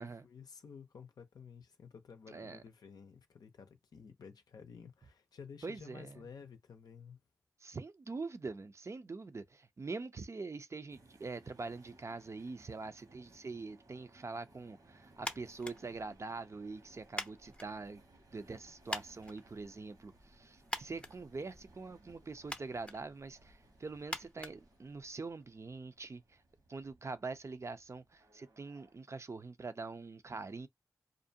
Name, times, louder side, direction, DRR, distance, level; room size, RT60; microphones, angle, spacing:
voice 1, 0.0-7.2, left 6 dB, 85° left, 0.5 m, -53 dB
voice 2, 2.3-2.6 5.6-6.2 7.6-18.0 18.3-26.2 26.7-30.7, right 3 dB, 45° right, 0.4 m, -44 dB
sound 1, 10.9-29.0, right 2 dB, 75° right, 1.1 m, -64 dB
sound 2, 15.2-25.4, left 1 dB, 15° left, 0.5 m, -47 dB
2.5 x 2.1 x 2.6 m
cardioid pair, 40°, 7 cm